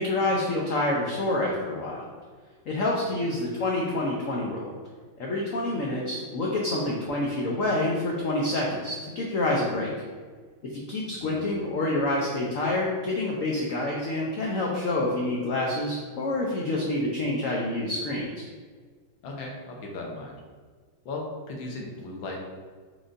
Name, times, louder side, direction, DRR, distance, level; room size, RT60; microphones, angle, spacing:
voice 1, 0.0-2.1 2.7-4.6 5.2-9.9 10.7-18.5, left 2 dB, 90° left, -2 dB, 0.7 m, -27 dB
voice 2, 11.2-11.7 19.2-20.4 21.0-22.4, left 2 dB, 75° left, -1 dB, 1.6 m, -37 dB
5.0 x 4.0 x 2.5 m, 1.5 s
omnidirectional pair, 2.2 m